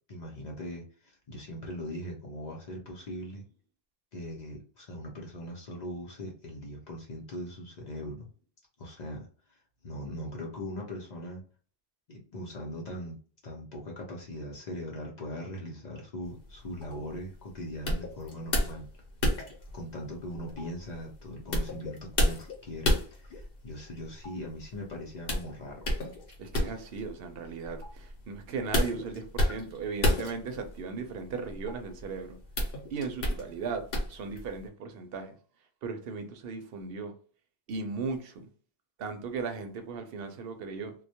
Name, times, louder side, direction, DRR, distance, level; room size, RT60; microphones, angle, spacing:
voice 1, 0.1-3.5 4.1-8.3 8.8-9.6 9.8-11.4 12.1-13.2 13.4-18.9 19.7-26.0, equal, 50° left, 0.7 m, -40 dB
sound 1, 16.2-34.7, left 1 dB, 70° left, 1.0 m, -32 dB
voice 2, 26.4-32.4 32.9-33.8 34.1-35.4 35.8-37.1 37.7-38.5 39.0-40.9, right 5 dB, 70° right, 0.8 m, -37 dB
2.2 x 2.1 x 2.7 m
omnidirectional pair, 1.0 m